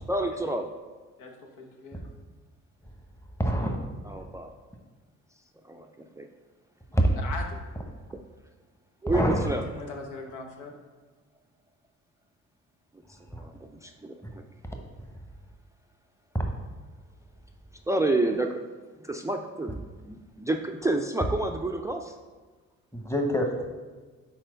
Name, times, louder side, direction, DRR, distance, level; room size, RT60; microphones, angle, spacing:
voice 1, 0.1-0.7 4.0-4.5 5.6-5.9 6.2-6.3 8.1-8.2 9.0-9.6 13.1-14.4 17.9-18.6 19.0-22.1, right 2 dB, 10° right, 4 dB, 0.4 m, -29 dB
voice 2, 1.2-2.0 7.2-7.6 9.6-10.7, left 4 dB, 90° left, 2 dB, 1.0 m, -40 dB
voice 3, 3.4-3.8 6.9-7.0 9.1-9.4 22.9-23.7, equal, 10° left, 2 dB, 1.0 m, -25 dB
4.4 x 4.3 x 5.1 m, 1.4 s
cardioid pair, 90°, 30 cm